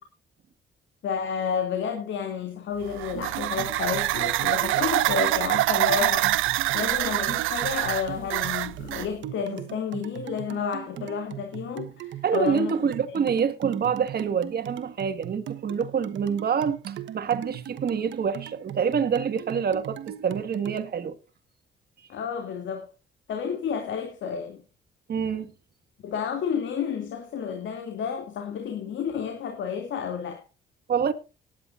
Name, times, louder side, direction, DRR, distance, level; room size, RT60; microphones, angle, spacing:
voice 1, 1.0-6.3 6.7-12.9 22.1-22.9 23.3-24.6 26.0-30.4, left 7 dB, 70° left, 2.8 m, -31 dB
sound 1, 2.8-9.1, right 16 dB, 85° right, 0.6 m, -25 dB
sound 2, 3.1-20.9, right 11 dB, 70° right, 1.3 m, -39 dB
voice 2, 12.2-21.1 25.1-25.5 30.9-31.1, right 7 dB, 50° right, 2.0 m, -26 dB
18.5 x 10.5 x 2.6 m
cardioid pair, 90°, 20 cm